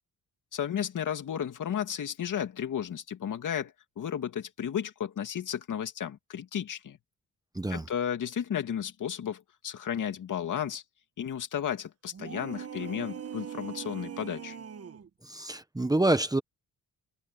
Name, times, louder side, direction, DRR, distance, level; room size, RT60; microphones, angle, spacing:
voice 1, 0.5-7.0 7.7-10.8 11.2-14.6, left 9 dB, 60° left, 2.5 m, -33 dB
voice 2, 7.5-7.9 15.2-16.4, right 2 dB, 10° right, 1.2 m, -27 dB
sound 1, 12.1-15.1, right 8 dB, 45° right, 1.5 m, -40 dB
cardioid pair, 100°, 35 cm